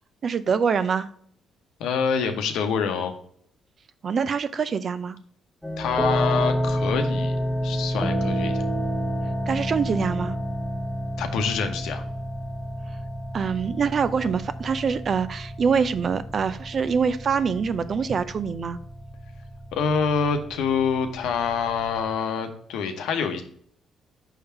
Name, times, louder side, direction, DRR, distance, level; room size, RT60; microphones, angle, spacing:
voice 1, 0.2-1.1 4.0-5.2 9.5-10.3 13.3-18.8, right 6 dB, 50° right, 0.5 m, -24 dB
voice 2, 1.8-3.2 5.8-7.4 7.6-8.6 11.2-12.0 19.7-23.4, left 6 dB, 85° left, 0.9 m, -26 dB
sound 1, 5.6-22.1, equal, ahead, 0.8 m, -30 dB
5.6 x 3.5 x 5.6 m
cardioid pair, 90°, 0 cm